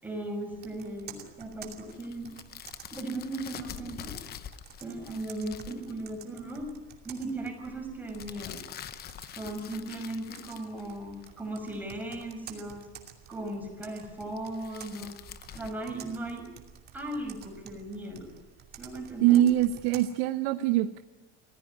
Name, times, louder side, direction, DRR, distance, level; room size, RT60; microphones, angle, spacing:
voice 1, 0.0-2.3 2.9-4.2 4.8-6.7 7.0-8.6 9.3-12.9 13.3-15.1 15.5-16.5 16.9-18.3 18.8-19.4, right 1 dB, 5° right, 3 dB, 6.1 m, -37 dB
Computer keyboard, 0.5-20.1, right 8 dB, 30° right, 2.7 m, -51 dB
sound 1, 1.9-6.0 8.1-11.3 14.4-15.7, left 10 dB, 30° left, 0.9 m, -45 dB
voice 2, 19.2-21.0, right 13 dB, 80° right, 9 dB, 1.0 m, -23 dB
25.5 x 16.0 x 9.6 m, 1.1 s
cardioid pair, 150°, 31 cm